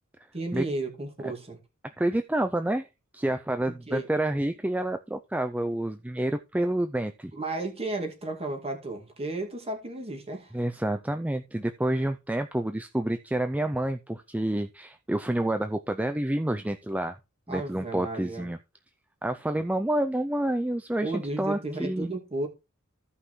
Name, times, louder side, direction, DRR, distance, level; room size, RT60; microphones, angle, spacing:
voice 1, 0.3-1.6 3.9-4.1 7.3-10.5 17.5-18.5 21.0-22.5, right 2 dB, 30° right, 2.2 m, -33 dB
voice 2, 2.0-7.3 10.5-17.2 17.5-18.6 19.2-22.1, right 1 dB, 5° right, 0.4 m, -28 dB
15.0 x 5.6 x 3.1 m
head